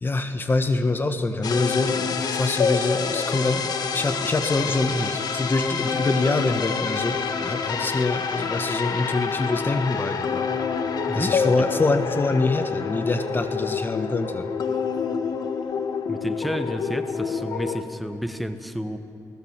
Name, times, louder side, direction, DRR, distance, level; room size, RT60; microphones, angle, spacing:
voice 1, 0.0-10.5 11.1-14.5, left 3 dB, 30° left, 8 dB, 1.3 m, -25 dB
sound 1, 1.4-17.8, left 6 dB, 80° left, 1.5 m, -27 dB
voice 2, 11.1-11.7 16.1-19.0, equal, ahead, 8 dB, 1.4 m, -30 dB
28.5 x 19.0 x 7.3 m, 2.5 s
cardioid pair, 105°, 7 cm